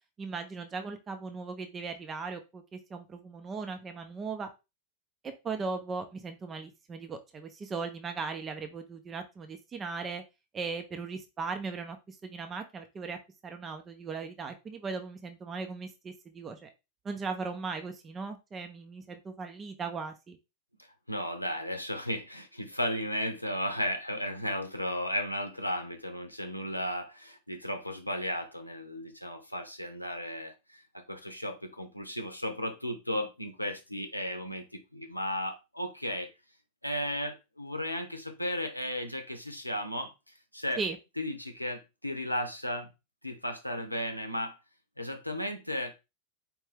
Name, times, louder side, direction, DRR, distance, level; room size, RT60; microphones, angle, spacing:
voice 1, 0.2-4.5 5.2-10.2 10.5-16.7 17.0-20.4 40.8-41.0, right 4 dB, 20° right, 0.6 m, -38 dB
voice 2, 21.1-36.3 36.8-40.1 40.5-40.8 41.2-42.9 43.2-44.6 45.0-45.9, equal, 85° left, 0.7 m, -35 dB
4.6 x 2.6 x 3.4 m
figure-of-eight pair, 90°, 0 cm